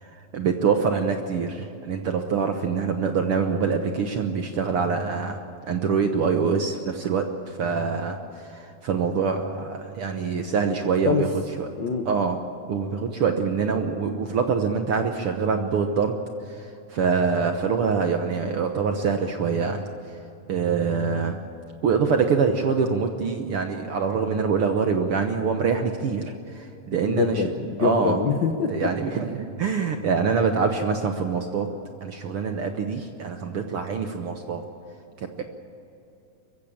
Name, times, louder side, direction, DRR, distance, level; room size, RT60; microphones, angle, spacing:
voice 1, 0.0-5.4 5.7-11.3 11.6-11.7 12.0-12.4 12.7-16.1 16.5-19.9 20.5-21.4 21.8-26.2 26.5-27.4 27.8-28.2 28.7-31.7 32.0-34.6 35.4-35.5, right 5 dB, 65° right, 5 dB, 1.4 m, -25 dB
voice 2, 27.0-28.7, left 6 dB, 90° left, 5 dB, 0.9 m, -24 dB
23.0 x 15.5 x 8.8 m, 2.8 s
omnidirectional pair, 3.8 m